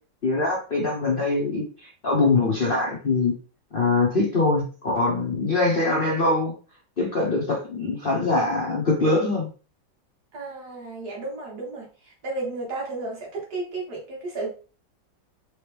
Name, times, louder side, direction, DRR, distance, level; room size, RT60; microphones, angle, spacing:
voice 1, 0.2-3.3 3.7-6.5 7.0-9.5, left 3 dB, 45° left, -3 dB, 0.7 m, -23 dB
voice 2, 10.3-14.5, right 3 dB, 55° right, -2 dB, 1.9 m, -33 dB
4.0 x 3.1 x 3.3 m, 0.37 s
omnidirectional pair, 2.0 m